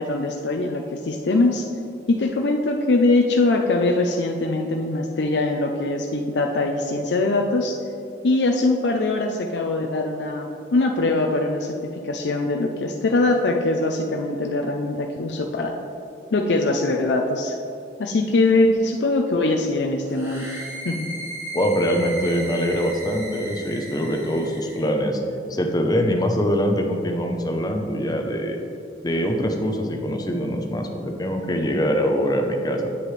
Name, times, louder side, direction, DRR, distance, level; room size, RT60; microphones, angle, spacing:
voice 1, 0.0-1.7 2.1-7.8 8.2-11.8 12.0-15.8 16.3-17.5 18.0-20.5 20.8-21.1, left 2 dB, 75° left, 2 dB, 0.5 m, -22 dB
sound 1, 20.1-24.9, right 1 dB, 15° right, 1.3 m, -36 dB
voice 2, 21.5-25.2 25.5-28.6 29.0-33.0, equal, 25° left, 3 dB, 0.7 m, -23 dB
8.5 x 7.6 x 3.2 m, 2.7 s
head